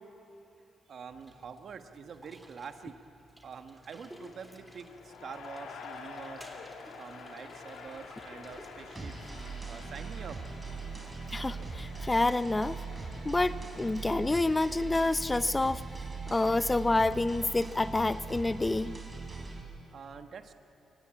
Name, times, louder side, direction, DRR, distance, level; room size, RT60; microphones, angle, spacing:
voice 1, 0.9-2.9 3.4-6.5 7.0-9.3 9.7-10.4 19.9-20.6, right 6 dB, 60° right, 7 dB, 1.3 m, -46 dB
sound 1, 1.1-10.3, equal, 5° right, 3.2 m, -55 dB
sound 2, 3.9-13.9, left 5 dB, 80° left, 1.9 m, -49 dB
sound 3, 9.0-19.6, right 4 dB, 25° right, 4.0 m, -40 dB
voice 2, 11.3-12.8 13.2-15.8 16.3-19.0, left 2 dB, 20° left, 15 dB, 0.5 m, -28 dB
24.0 x 16.5 x 8.7 m, 2.8 s
supercardioid pair, 65°, 0 cm